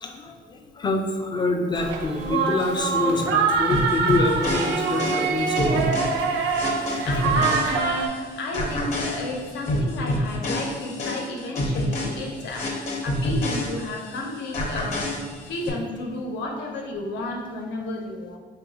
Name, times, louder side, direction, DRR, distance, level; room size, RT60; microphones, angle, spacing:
voice 1, 0.0-6.6 6.9-7.0, left 2 dB, 25° left, 3 dB, 0.3 m, -26 dB
sound 1, 1.7-8.1, right 5 dB, 90° right, 0.4 m, -24 dB
sound 2, 3.7-8.2 8.5-14.2 14.5-15.7, left 1 dB, 40° left, 0.7 m, -28 dB
voice 2, 7.1-15.1 15.5-18.4, left 2 dB, 85° left, 1 dB, 0.7 m, -32 dB
3.0 x 2.3 x 3.9 m, 1.4 s
cardioid pair, 130°, 18 cm